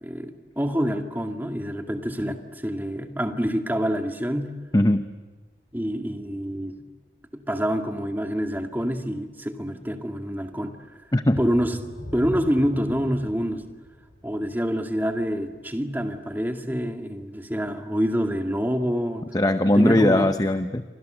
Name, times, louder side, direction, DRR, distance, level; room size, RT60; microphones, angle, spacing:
voice 1, 0.0-4.5 5.7-6.8 7.3-10.8 11.4-11.8 12.1-13.6 14.2-19.3 19.7-20.3, equal, 10° right, 5 dB, 2.2 m, -26 dB
voice 2, 4.7-5.1 11.1-11.4 19.3-20.8, left 1 dB, 20° left, 9 dB, 0.8 m, -20 dB
sound 1, 11.2-16.6 17.1-17.2 17.7-17.8, equal, 80° left, 4.6 m, -41 dB
29.0 x 25.0 x 7.9 m, 1.4 s
head